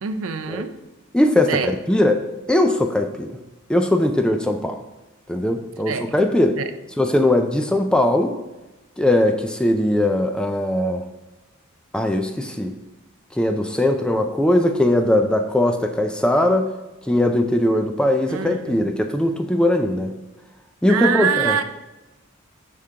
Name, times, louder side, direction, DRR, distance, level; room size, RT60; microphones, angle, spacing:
voice 1, 0.0-0.7 1.5-1.7 5.9-6.1 6.6-6.7 18.3-18.8 20.9-21.6, right 7 dB, 70° right, 9 dB, 0.5 m, -24 dB
voice 2, 1.1-2.2 2.5-3.4 3.7-4.8 5.3-6.6 7.0-8.3 9.0-11.1 11.9-12.7 13.3-16.7 17.1-20.2 20.8-21.6, left 1 dB, 5° left, 5 dB, 0.3 m, -20 dB
9.7 x 3.7 x 2.8 m, 1.1 s
head